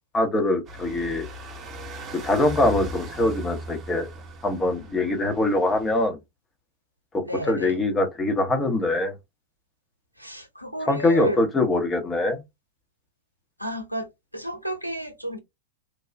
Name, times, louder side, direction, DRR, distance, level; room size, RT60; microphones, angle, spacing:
voice 1, 0.1-1.3 2.1-4.1 4.4-6.2 7.1-9.1 10.9-12.4, left 2 dB, 20° left, 0.9 m, -23 dB
sound 1, 0.7-6.1, right 1 dB, 30° right, 1.0 m, -38 dB
voice 2, 7.2-7.8 10.2-11.4 13.6-15.4, right 1 dB, 90° right, 0.5 m, -32 dB
3.2 x 2.3 x 2.4 m
figure-of-eight pair, 90°, 0 cm